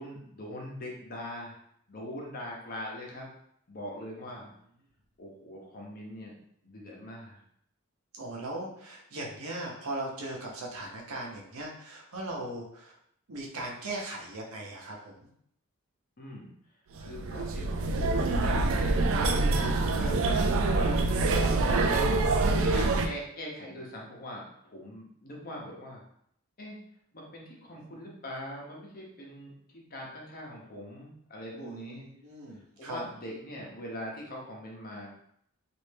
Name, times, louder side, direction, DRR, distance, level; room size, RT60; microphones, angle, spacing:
voice 1, 0.0-1.6 1.9-3.3 3.7-4.5 5.2-6.3 6.6-7.4 16.2-16.5 17.0-21.1 21.4-26.0 26.6-26.8 27.1-32.1 32.8-35.1, equal, 40° left, -2 dB, 0.8 m, -42 dB
voice 2, 8.1-13.0 13.3-15.3 20.0-20.1 27.7-28.0 31.5-33.0, right 2 dB, 75° right, -2 dB, 0.8 m, -39 dB
sound 1, 17.0-23.1, right 3 dB, 60° right, 0.3 m, -25 dB
3.2 x 2.6 x 3.3 m, 0.70 s
head